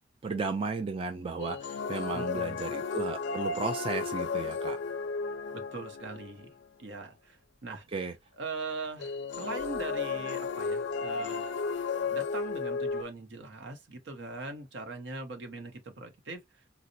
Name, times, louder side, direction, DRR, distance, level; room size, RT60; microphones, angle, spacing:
voice 1, 0.2-4.8 7.9-8.1, right 4 dB, 30° right, 0.3 m, -34 dB
sound 1, 1.4-6.5 9.0-13.0, left 4 dB, 65° left, 0.4 m, -33 dB
voice 2, 2.1-2.6 5.5-6.5 6.8-7.9 8.4-11.5 12.1-16.4, right 3 dB, 70° right, 0.8 m, -41 dB
4.0 x 2.0 x 2.6 m
head